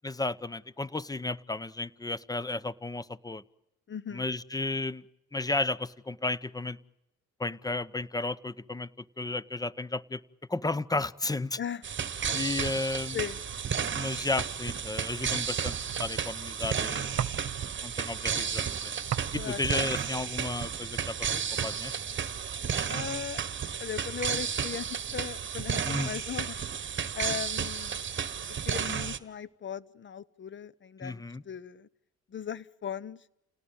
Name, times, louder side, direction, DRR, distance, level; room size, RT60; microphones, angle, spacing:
voice 1, 0.0-3.4 4.1-5.0 5.3-6.8 7.4-10.2 10.5-11.6 12.3-13.2 13.9-17.3 17.8-18.9 19.3-21.2 21.6-21.9 25.8-26.1 31.0-31.4, left 2 dB, 10° left, 19 dB, 0.9 m, -33 dB
voice 2, 3.9-4.3 11.6-11.8 12.2-12.4 13.1-13.4 19.3-19.6 22.9-23.4 23.8-26.6 27.1-28.0 28.6-31.9 32.3-33.2, left 8 dB, 40° left, 18 dB, 1.0 m, -38 dB
sound 1, 11.8-29.2, right 7 dB, 40° right, 1.5 m, -33 dB
sound 2, 13.1-21.6, right 10 dB, 60° right, 1.1 m, -41 dB
29.5 x 18.0 x 9.0 m, 0.89 s
cardioid pair, 90°, 30 cm